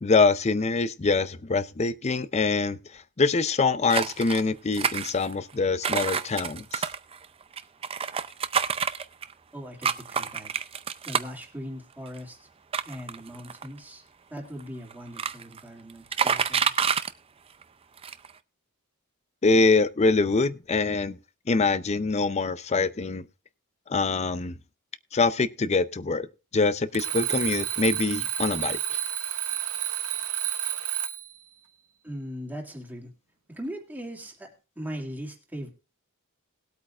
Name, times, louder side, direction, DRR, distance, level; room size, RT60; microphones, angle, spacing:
voice 1, 0.0-6.9 19.4-21.2 21.5-23.2 23.9-24.5 25.1-26.3 26.5-29.0, left 3 dB, 30° left, 0.5 m, -24 dB
sound 1, 3.9-4.4 4.7-5.5 5.8-9.3 9.8-11.4 12.1-12.2 12.7-13.8 14.6-14.7 14.9-15.6 15.9-17.1 17.6-17.7 18.0-18.3, right 6 dB, 25° right, 0.4 m, -28 dB
voice 2, 9.5-10.5 11.0-12.5 12.8-14.0 14.3-16.7 32.0-33.1 33.5-34.5 34.8-35.7, equal, 10° right, 2.3 m, -39 dB
Alarm, 26.9-31.4, right 10 dB, 75° right, 1.4 m, -30 dB
19.5 x 8.4 x 2.4 m
head